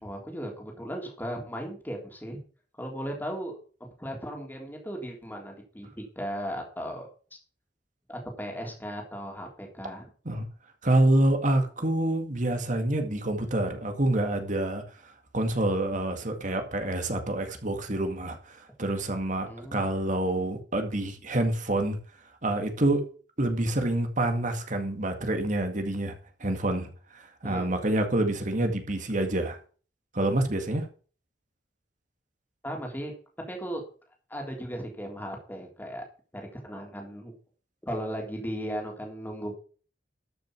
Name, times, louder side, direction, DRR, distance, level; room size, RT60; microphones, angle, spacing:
voice 1, 0.0-2.4 2.8-7.1 8.1-10.1 19.4-19.9 27.4-27.7 32.6-33.1 33.5-33.8 34.3-36.1 36.3-37.3 37.8-39.5, equal, 10° left, 3.5 m, -36 dB
voice 2, 10.8-22.0 22.4-23.1 23.4-29.6 30.1-30.9, right 1 dB, 45° right, 2.1 m, -27 dB
13.0 x 6.7 x 6.1 m
head